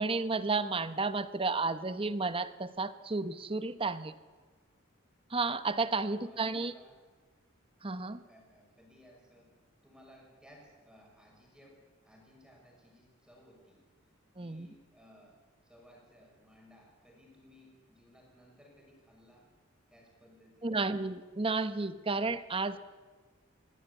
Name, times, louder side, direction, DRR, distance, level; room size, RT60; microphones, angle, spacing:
voice 1, 0.0-4.1 5.3-6.7 7.8-8.2 14.4-14.7 20.6-22.8, right 3 dB, 25° right, 12 dB, 0.9 m, -32 dB
voice 2, 6.1-7.0 8.3-11.8 12.0-13.8 14.4-19.4 19.9-20.9, equal, 5° right, -2 dB, 6.2 m, -60 dB
22.0 x 16.0 x 8.2 m, 1.4 s
head